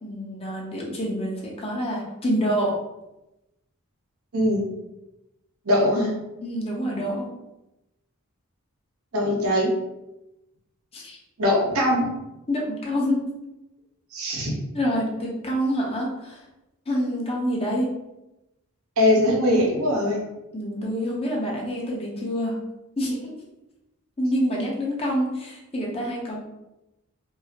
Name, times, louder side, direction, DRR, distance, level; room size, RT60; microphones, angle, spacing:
voice 1, 0.0-2.7 6.4-7.3 10.9-11.2 12.5-13.2 14.7-16.4 16.9-17.9 20.5-22.6 23.0-23.3 24.2-26.4, equal, 25° left, -3 dB, 0.8 m, -27 dB
voice 2, 5.6-6.1 9.1-9.7 11.4-12.1 14.1-14.5 19.0-20.2, left 1 dB, 75° right, -1 dB, 0.9 m, -21 dB
4.6 x 2.0 x 2.8 m, 0.93 s
head